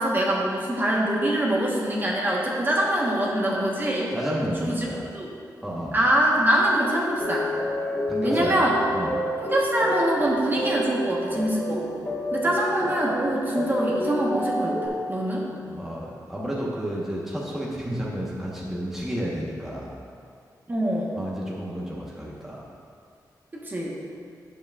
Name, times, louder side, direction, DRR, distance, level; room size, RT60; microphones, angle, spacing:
voice 1, 0.0-4.1 4.6-4.9 5.1-5.3 5.9-7.5 8.2-8.8 9.4-15.5 20.7-21.1 23.5-24.0, right 1 dB, 25° right, -4 dB, 1.3 m, -24 dB
voice 2, 4.1-5.0 5.6-6.0 8.1-8.5 8.9-9.1 15.7-20.0 21.2-22.6, equal, 5° right, -5 dB, 1.2 m, -31 dB
sound 1, 7.2-14.9, equal, 20° left, 1.2 m, -29 dB
10.0 x 7.2 x 2.4 m, 2.3 s
wide cardioid pair, 100°, 7 cm